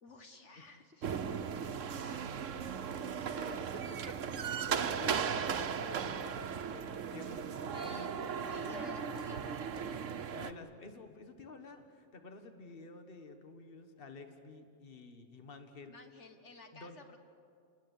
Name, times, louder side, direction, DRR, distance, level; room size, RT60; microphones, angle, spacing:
voice 1, 0.0-2.3 7.7-8.1 8.4-9.9 15.9-17.2, left 3 dB, 70° left, 5 dB, 1.8 m, -53 dB
sound 1, 1.0-10.5, right 7 dB, 85° right, 1.3 m, -37 dB
voice 2, 3.3-3.8 4.4-9.0 10.3-15.9 16.7-17.0, left 3 dB, 50° left, 6 dB, 1.8 m, -50 dB
30.0 x 20.5 x 8.3 m, 2.5 s
omnidirectional pair, 1.3 m